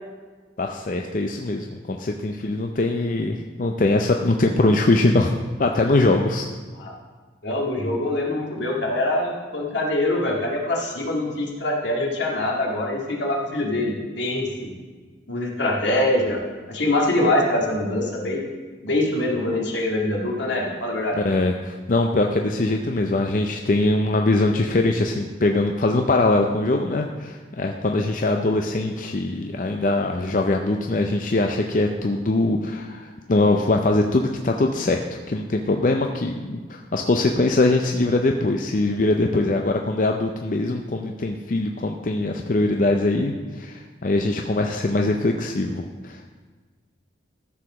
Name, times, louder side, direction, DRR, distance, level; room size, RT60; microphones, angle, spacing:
voice 1, 0.6-5.3 5.6-6.5 21.2-46.2, left 2 dB, 45° left, 3 dB, 0.5 m, -22 dB
voice 2, 7.4-14.7 15.3-16.4 16.7-18.4 18.8-21.2, left 1 dB, 80° left, -1 dB, 2.0 m, -24 dB
13.5 x 4.9 x 6.1 m, 1.4 s
head